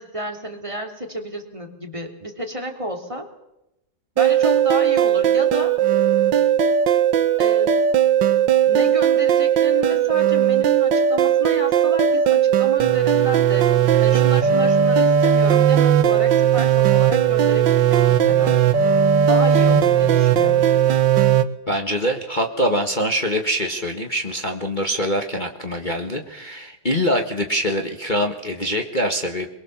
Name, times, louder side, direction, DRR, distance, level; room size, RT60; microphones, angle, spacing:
voice 1, 0.0-3.3 4.1-5.7 7.4-7.8 8.7-13.7 14.0-18.6 19.3-20.7, right 1 dB, 15° right, 2 dB, 3.1 m, -31 dB
sound 1, 4.2-21.4, right 9 dB, 65° right, 1.6 m, -17 dB
voice 2, 21.7-29.5, equal, 25° left, 3 dB, 1.6 m, -24 dB
23.0 x 22.0 x 7.2 m, 0.88 s
omnidirectional pair, 2.2 m